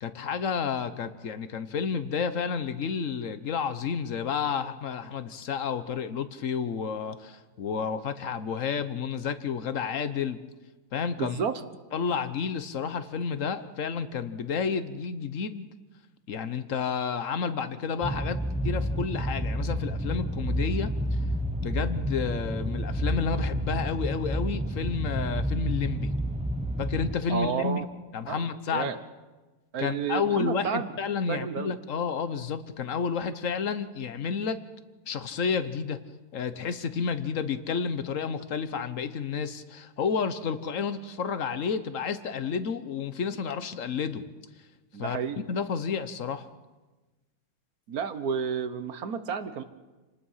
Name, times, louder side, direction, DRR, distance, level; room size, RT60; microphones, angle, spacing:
voice 1, 0.0-10.4 10.9-11.4 11.9-15.7 16.3-18.4 18.6-20.9 21.6-26.1 26.8-27.8 28.1-28.9 29.8-34.6 35.1-36.0 36.3-44.2 45.0-45.2 45.5-46.5, left 6 dB, 55° left, 12 dB, 1.3 m, -30 dB
voice 2, 11.2-11.6 27.3-27.9 28.3-28.4 28.7-29.0 29.7-30.9 31.3-31.7 44.9-45.4 47.9-49.6, right 7 dB, 65° right, 11 dB, 1.5 m, -31 dB
sound 1, 18.0-27.2, right 1 dB, 10° right, 0.4 m, -29 dB
28.0 x 19.0 x 5.7 m, 1.2 s
omnidirectional pair, 1.7 m